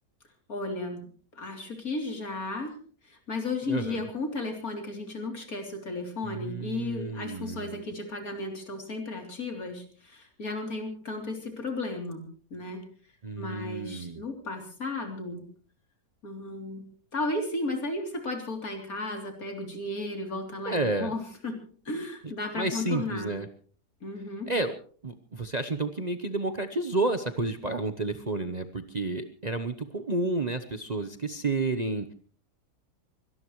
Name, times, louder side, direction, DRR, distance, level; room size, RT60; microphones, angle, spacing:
voice 1, 0.5-1.0 1.3-2.7 3.0-12.8 13.4-15.4 16.2-16.8 17.1-21.6 21.9-23.4 24.0-24.5, left 2 dB, 60° left, 4 dB, 3.8 m, -34 dB
voice 2, 3.7-4.1 6.2-7.9 13.2-14.2 20.6-21.1 22.2-23.5 24.5-24.8 25.0-32.1, right 2 dB, 30° right, 8 dB, 0.9 m, -31 dB
24.0 x 18.5 x 3.2 m, 0.44 s
omnidirectional pair, 1.7 m